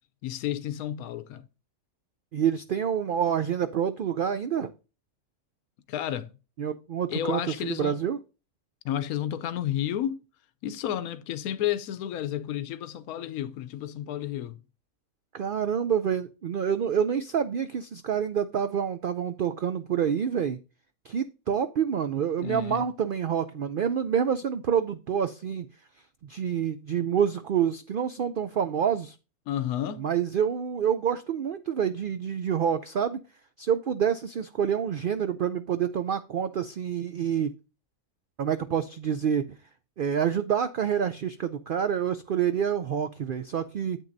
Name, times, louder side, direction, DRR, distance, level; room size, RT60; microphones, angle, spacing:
voice 1, 0.2-1.4 5.9-6.3 7.1-8.0 8.8-10.2 10.6-14.6 22.4-22.8 29.5-30.0, left 11 dB, 85° left, 1.1 m, -31 dB
voice 2, 2.3-4.7 6.6-8.2 15.3-20.6 21.0-25.7 26.2-29.2 30.0-33.2 33.6-37.5 38.4-39.6 40.0-44.0, right 8 dB, 80° right, 0.4 m, -27 dB
9.0 x 7.8 x 2.6 m
omnidirectional pair, 1.5 m